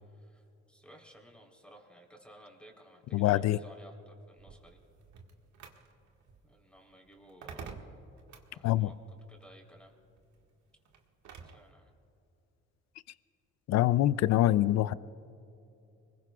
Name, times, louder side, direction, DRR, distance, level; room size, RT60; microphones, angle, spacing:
voice 1, 0.1-4.8 6.4-8.0 8.5-9.0 9.3-10.0 11.4-11.9, right 1 dB, 5° left, 0 dB, 3.7 m, -56 dB
voice 2, 3.1-3.6 8.6-8.9 13.7-14.9, left 14 dB, 60° left, 17 dB, 0.5 m, -25 dB
sound 1, 4.4-11.7, right 5 dB, 70° right, 1.7 m, -51 dB
24.5 x 21.0 x 2.4 m, 2.7 s
cardioid pair, 80°, 31 cm